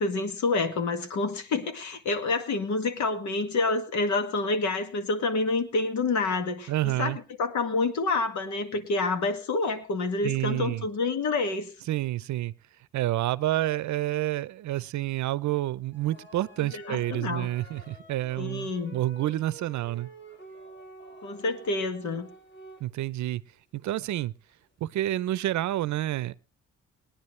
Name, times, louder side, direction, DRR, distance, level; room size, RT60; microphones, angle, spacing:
voice 1, 0.0-7.1 7.4-11.7 16.7-17.5 18.4-19.0 21.2-22.3, left 3 dB, 70° left, 2.0 m, -28 dB
voice 2, 6.7-7.2 10.2-10.9 11.9-12.5 12.9-20.1 22.8-23.4 23.7-24.3 24.8-26.3, right 14 dB, 70° right, 0.6 m, -29 dB
sound 1, 15.9-23.3 23.9-24.0 24.5-24.6 25.2-25.3 25.5-25.6, right 2 dB, 40° left, 4.5 m, -49 dB
21.0 x 10.5 x 3.2 m
cardioid pair, 90°, 30 cm